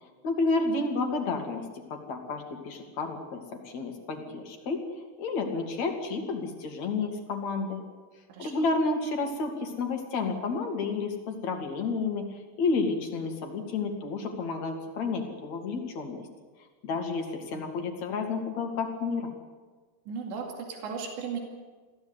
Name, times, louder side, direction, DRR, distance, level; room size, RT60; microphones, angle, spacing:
voice 1, 0.2-1.6 1.9-4.8 5.2-7.8 8.4-16.2 16.8-19.4, left 3 dB, 45° left, 3 dB, 3.1 m, -31 dB
voice 2, 20.1-21.4, right 6 dB, 90° right, 1 dB, 4.7 m, -36 dB
22.5 x 16.0 x 8.2 m, 1.4 s
omnidirectional pair, 5.0 m